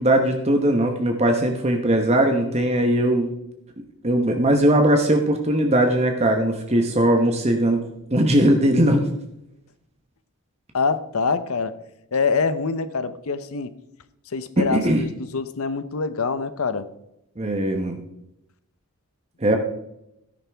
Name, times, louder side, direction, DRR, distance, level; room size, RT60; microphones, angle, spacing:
voice 1, 0.0-3.3 4.0-7.8 8.1-9.1 14.6-15.0 17.4-18.0 19.4-19.6, right 1 dB, 30° right, 0.9 m, -19 dB
voice 2, 10.7-11.7 12.1-13.7 14.3-16.9 19.5-19.6, left 4 dB, 80° left, 0.8 m, -25 dB
13.0 x 10.5 x 3.5 m
head